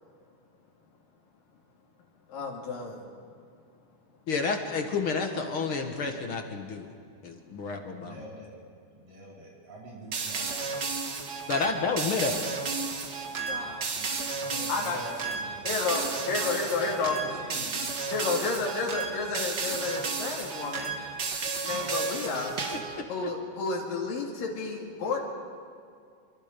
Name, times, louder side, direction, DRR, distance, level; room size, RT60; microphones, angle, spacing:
voice 1, 2.3-3.0 13.5-13.9 14.7-15.0 15.6-17.2 18.1-21.0 21.6-22.6 23.1-25.2, left 4 dB, 85° left, -1 dB, 4.0 m, -31 dB
voice 2, 4.3-6.9 7.2-8.2 11.5-12.4, left 4 dB, 50° left, 4 dB, 1.9 m, -30 dB
voice 3, 7.9-8.5 8.9-10.9 11.7-12.2 13.9-14.2 14.4-15.7 16.7-18.1 21.7-21.8, right 1 dB, 75° right, -5 dB, 6.3 m, -44 dB
sound 1, 10.1-23.0, right 4 dB, 45° right, 1.5 m, -33 dB
26.0 x 24.5 x 5.2 m, 2.3 s
omnidirectional pair, 3.8 m